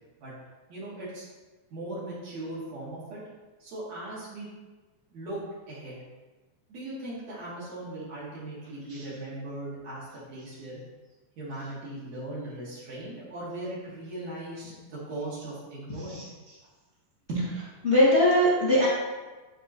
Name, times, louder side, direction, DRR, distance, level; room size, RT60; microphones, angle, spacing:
voice 1, 0.7-1.3 1.7-3.2 3.6-4.5 5.1-5.4 5.7-6.0 6.7-10.8 11.4-16.3 17.3-17.5, right 1 dB, 55° right, -8 dB, 2.7 m, -38 dB
voice 2, 17.8-18.9, equal, 30° left, -10 dB, 1.4 m, -21 dB
11.0 x 3.6 x 3.1 m, 1.3 s
omnidirectional pair, 4.2 m